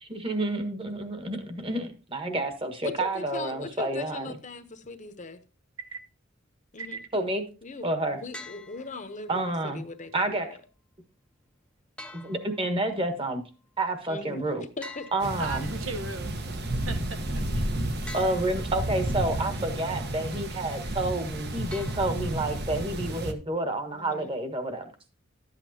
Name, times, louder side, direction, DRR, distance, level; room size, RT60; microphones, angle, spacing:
voice 1, 0.0-4.3 7.1-7.4 7.8-8.2 9.3-9.8 10.1-10.5 12.1-13.4 13.8-14.6 15.1-15.7 18.1-24.9, right 2 dB, 25° right, 1.4 m, -29 dB
voice 2, 2.8-5.4 6.7-7.0 7.6-10.6 14.1-15.1 23.9-24.3, left 3 dB, 40° left, 0.9 m, -40 dB
sound 1, 8.3-9.3 12.0-13.1 14.8-16.0 18.1-19.0 21.7-22.6, left 2 dB, 5° left, 0.6 m, -46 dB
sound 2, 15.2-23.3, right 1 dB, 55° right, 1.1 m, -32 dB
voice 3, 15.4-16.3 16.9-17.7, right 3 dB, 85° right, 1.1 m, -37 dB
12.0 x 8.2 x 2.8 m
head